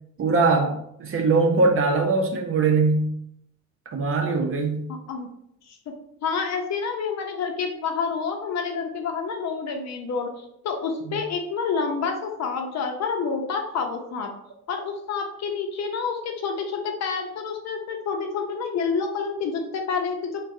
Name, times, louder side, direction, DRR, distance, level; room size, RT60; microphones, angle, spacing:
voice 1, 0.2-3.1 3.9-4.9 11.1-11.2, right 3 dB, 45° right, 3 dB, 0.6 m, -21 dB
voice 2, 4.9-5.3 5.7-5.9 6.2-14.3 14.7-20.4, left 5 dB, 60° left, 4 dB, 0.6 m, -28 dB
3.7 x 2.2 x 2.5 m, 0.74 s
cardioid pair, 90°, 30 cm